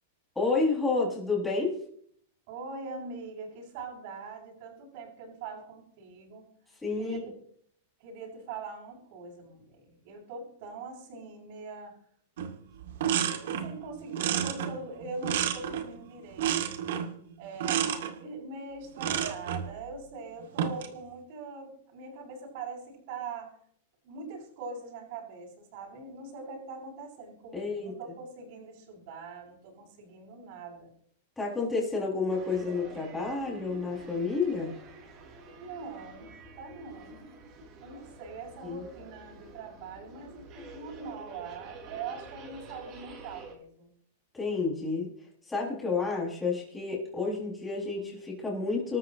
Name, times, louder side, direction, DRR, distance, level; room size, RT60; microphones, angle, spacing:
voice 1, 0.3-1.8 6.8-7.2 27.5-27.9 31.4-34.7 38.6-38.8 44.3-45.1 45.5-49.0, left 4 dB, 10° left, -4 dB, 6.4 m, -30 dB
voice 2, 2.5-6.4 7.0-7.3 8.0-11.9 13.4-16.9 17.4-23.5 24.0-30.9 35.6-37.2 37.8-43.9, right 4 dB, 55° right, -6 dB, 7.5 m, -42 dB
sound 1, 12.4-12.5 12.8-13.7 14.1-16.0 16.4-17.1 17.6-18.1 19.0-19.7 20.4-20.9, right 9 dB, 70° right, 2.3 m, -30 dB
sound 2, 32.3-43.5, right 3 dB, 35° right, 5.9 m, -48 dB
27.5 x 13.0 x 3.1 m, 0.62 s
supercardioid pair, 140°, 0 cm